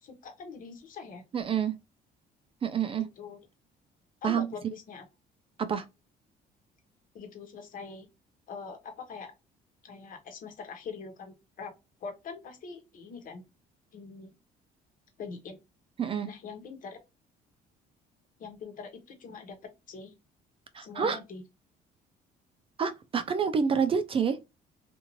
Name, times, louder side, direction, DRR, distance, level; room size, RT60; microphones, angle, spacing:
voice 1, 0.0-1.2 3.0-3.4 4.2-5.0 7.1-8.1 8.5-9.3 9.8-11.7 12.0-13.4 13.9-14.4 15.2-15.6 16.2-17.0 18.4-19.6 19.9-20.1 20.8-21.4, left 5 dB, 55° left, 1.1 m, -43 dB
voice 2, 1.3-1.7 2.6-3.1 4.2-4.5 5.6-5.8 16.0-16.3 20.7-21.2 22.8-24.4, right 6 dB, 35° right, 0.4 m, -28 dB
2.6 x 2.5 x 3.0 m
cardioid pair, 110°, 17 cm